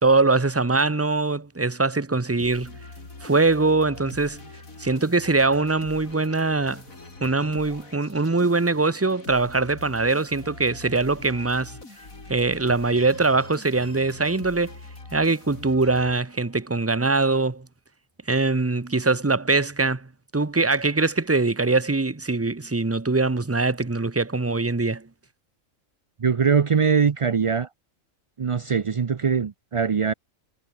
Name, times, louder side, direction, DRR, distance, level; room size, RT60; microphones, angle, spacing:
voice 1, 0.0-2.7 3.2-4.4 4.8-6.8 7.2-11.8 12.3-14.7 15.1-17.7 18.3-20.1 20.3-25.0, right 3 dB, 15° right, 0.7 m, -22 dB
sound 1, 2.4-16.7, left 3 dB, 90° left, 4.9 m, -43 dB
voice 2, 26.2-27.7 28.4-30.1, right 6 dB, 55° right, 0.3 m, -22 dB
omnidirectional pair, 1.4 m